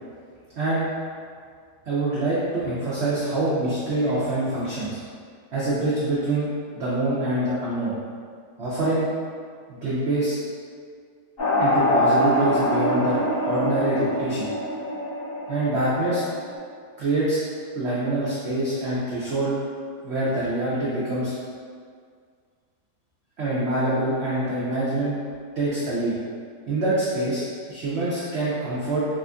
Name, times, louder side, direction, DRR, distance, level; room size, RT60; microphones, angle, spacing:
voice 1, 0.6-0.9 1.9-5.0 5.5-6.5 6.8-8.0 8.6-9.1 9.8-10.4 11.6-14.5 15.5-16.2 17.0-17.4 17.7-19.6 20.0-21.3 23.4-25.2 25.6-26.1 26.7-27.4 27.7-29.1, right 2 dB, 85° right, -9 dB, 0.5 m, -25 dB
sound 1, 11.4-16.6, left 1 dB, 35° left, 1.3 m, -24 dB
4.2 x 2.5 x 2.2 m, 2.1 s
omnidirectional pair, 1.9 m